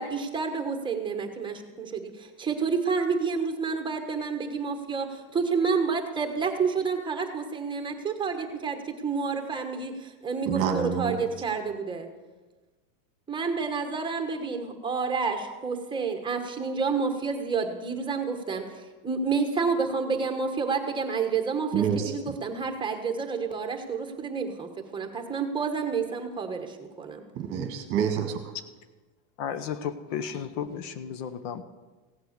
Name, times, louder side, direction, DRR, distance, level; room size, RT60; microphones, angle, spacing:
voice 1, 0.0-12.1 13.3-18.6 19.0-27.2, right 5 dB, 10° right, 5 dB, 1.2 m, -29 dB
voice 2, 10.5-11.2 21.7-22.1 27.3-28.5, right 7 dB, 30° right, 5 dB, 1.5 m, -27 dB
voice 3, 29.4-31.6, left 8 dB, 60° left, 11 dB, 1.0 m, -33 dB
16.5 x 8.2 x 6.6 m, 1.3 s
supercardioid pair, 145°, 42 cm